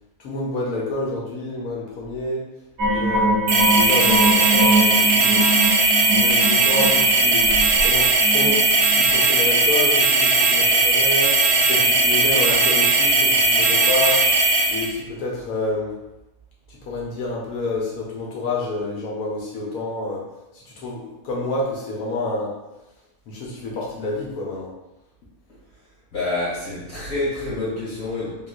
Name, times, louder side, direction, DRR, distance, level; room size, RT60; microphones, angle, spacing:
voice 1, 0.2-2.4 2.9-5.5 6.1-7.5 7.8-8.6 8.9-11.3 11.7-14.2 14.7-16.0 16.7-20.2 20.5-22.5 23.3-24.7, left 2 dB, 75° left, -4 dB, 1.2 m, -28 dB
sound 1, 2.8-9.1 9.4-9.5, right 1 dB, 55° right, 0.9 m, -23 dB
sound 2, 3.5-14.9, right 3 dB, 85° right, 1.1 m, -18 dB
voice 2, 26.1-28.5, left 2 dB, 60° left, -8 dB, 2.1 m, -27 dB
3.7 x 2.4 x 2.4 m, 0.97 s
omnidirectional pair, 1.6 m